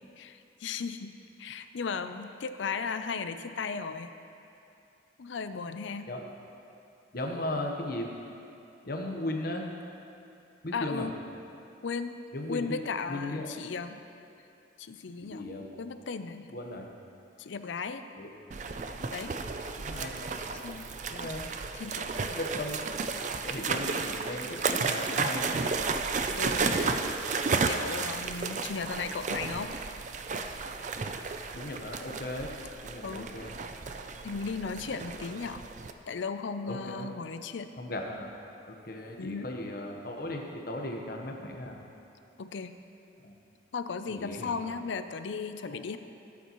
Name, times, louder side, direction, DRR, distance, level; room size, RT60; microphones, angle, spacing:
voice 1, 0.2-1.1 1.4-4.1 5.2-6.1 10.7-11.1 11.8-12.2 12.5-14.0 14.8-15.5 15.8-16.5 17.4-18.0 19.1-19.4 20.6-20.9 21.8-22.3 26.4-27.0 27.5-29.8 33.0-33.3 34.2-35.7 36.1-37.7 39.2-39.5 42.4-42.7 43.7-46.0, left 5 dB, 75° left, 10 dB, 0.5 m, -36 dB
voice 2, 7.1-8.1 8.8-9.7 10.6-11.1 12.3-12.8 13.1-13.5 15.2-15.7 16.5-16.9 18.1-18.3 19.8-20.1 21.1-21.4 22.3-22.8 23.2-25.8 31.6-32.5 32.8-33.5 36.6-37.1 37.8-38.3 38.7-41.8 43.2-43.3 44.1-44.5 45.7-45.8, left 1 dB, 50° left, 1 dB, 1.1 m, -36 dB
sound 1, 18.5-35.9, right 4 dB, 40° right, 0.4 m, -33 dB
17.5 x 8.3 x 3.1 m, 2.7 s
head